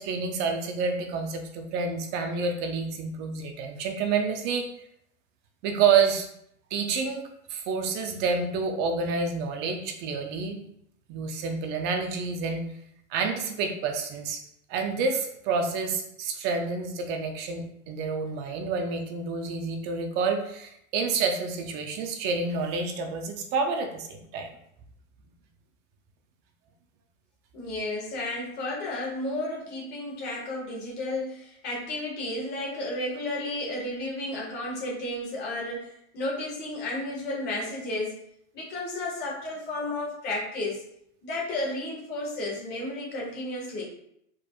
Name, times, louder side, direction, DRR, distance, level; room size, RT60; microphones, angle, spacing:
voice 1, 0.0-4.7 5.6-6.3 6.7-10.6 11.1-12.7 13.1-14.4 14.7-24.5, right 5 dB, 30° right, 5 dB, 0.5 m, -28 dB
voice 2, 27.5-38.2 38.5-40.8 41.2-43.8, left 2 dB, 30° left, -3 dB, 1.6 m, -32 dB
4.7 x 4.4 x 2.4 m, 0.73 s
supercardioid pair, 155°, 36 cm